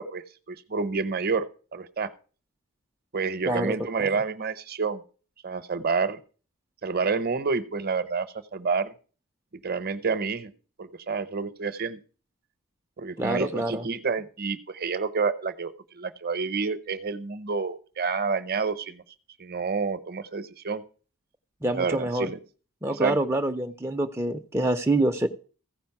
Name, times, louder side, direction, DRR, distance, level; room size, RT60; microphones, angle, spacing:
voice 1, 0.0-1.4 1.7-2.1 3.1-5.0 5.4-6.2 6.8-8.9 9.6-10.5 10.8-12.0 13.0-19.0 19.4-20.8 21.7-22.4 23.0-23.3, right 4 dB, 45° right, 13 dB, 0.7 m, -29 dB
voice 2, 3.5-4.1 13.2-13.8 21.6-22.3 22.8-25.3, right 1 dB, 10° right, 5 dB, 0.4 m, -26 dB
15.0 x 5.1 x 5.8 m, 0.39 s
head